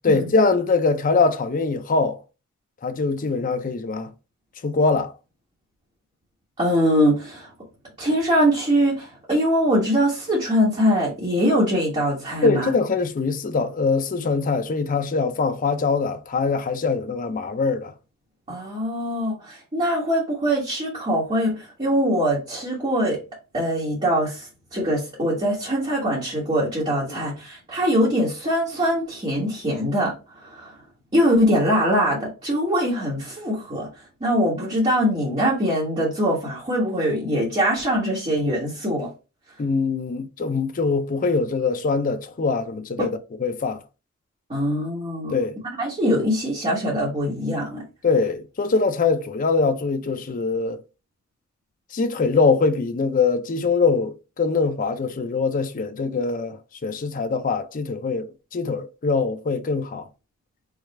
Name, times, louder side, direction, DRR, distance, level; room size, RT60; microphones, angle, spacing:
voice 1, 0.0-2.2 2.8-4.1 4.6-5.1 12.4-17.9 27.1-27.2 39.6-43.8 45.3-45.6 48.0-50.8 51.9-56.6 56.8-60.0, left 4 dB, 40° left, 0.5 m, -23 dB
voice 2, 6.6-7.5 8.0-12.7 18.5-23.2 23.5-30.8 31.1-39.1 43.0-43.1 44.5-45.4 45.8-47.8, equal, 30° right, 1.3 m, -22 dB
4.8 x 2.4 x 3.1 m
head